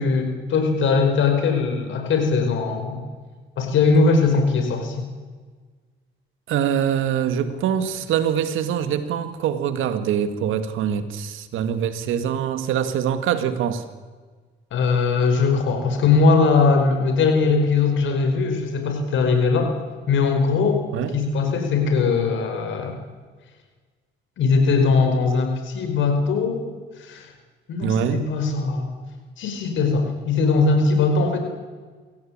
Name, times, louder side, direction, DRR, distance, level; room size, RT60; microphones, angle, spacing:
voice 1, 0.0-3.0 3.6-5.1 14.7-19.7 20.1-20.8 21.1-23.0 24.4-26.7 27.0-27.3 27.7-28.9 29.4-31.4, left 4 dB, 75° left, 5.2 m, -20 dB
voice 2, 6.5-13.8 20.9-21.1 27.8-28.2, right 8 dB, 90° right, 1.9 m, -24 dB
25.0 x 16.5 x 8.8 m
cardioid pair, 90°, 20 cm